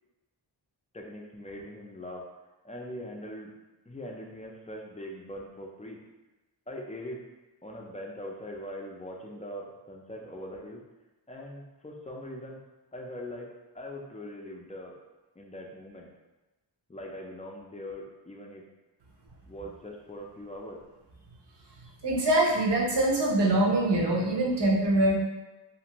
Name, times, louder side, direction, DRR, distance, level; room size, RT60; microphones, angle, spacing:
voice 1, 0.9-2.3 2.6-3.5 3.9-6.0 6.7-7.2 7.6-10.8 11.3-12.6 12.9-14.9 15.4-16.1 16.9-18.6 19.4-20.8, left 1 dB, 15° left, -1 dB, 0.4 m, -41 dB
voice 2, 22.0-25.1, right 1 dB, 60° right, -2 dB, 0.8 m, -24 dB
2.5 x 2.5 x 2.9 m, 1.1 s
wide cardioid pair, 75°, 46 cm